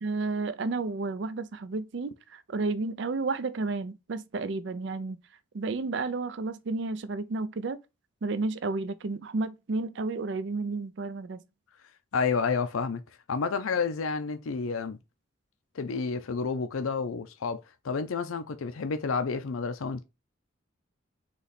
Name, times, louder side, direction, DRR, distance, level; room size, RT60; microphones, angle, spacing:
voice 1, 0.0-5.2 5.5-7.8 8.2-11.4, right 3 dB, 60° right, 0.4 m, -31 dB
voice 2, 12.1-13.0 13.3-15.0 15.7-17.6 17.8-20.0, left 5 dB, 90° left, 0.5 m, -30 dB
4.0 x 3.0 x 4.1 m
head